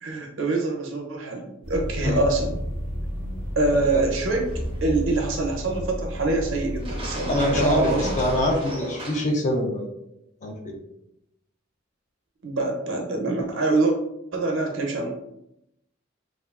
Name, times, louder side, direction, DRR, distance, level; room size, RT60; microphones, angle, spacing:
voice 1, 0.0-2.6 3.6-4.5 4.8-8.1 12.4-13.9 14.3-15.1, right 2 dB, 80° right, 2 dB, 0.6 m, -25 dB
sound 1, 1.6-8.5, equal, 70° left, 1.1 m, -32 dB
voice 2, 3.7-4.0 7.3-9.8 10.4-10.7, left 1 dB, 40° left, 2 dB, 0.5 m, -24 dB
sound 2, 3.7-5.4 6.8-9.2, right 1 dB, 30° right, 0.5 m, -34 dB
3.0 x 2.3 x 2.3 m, 0.82 s
head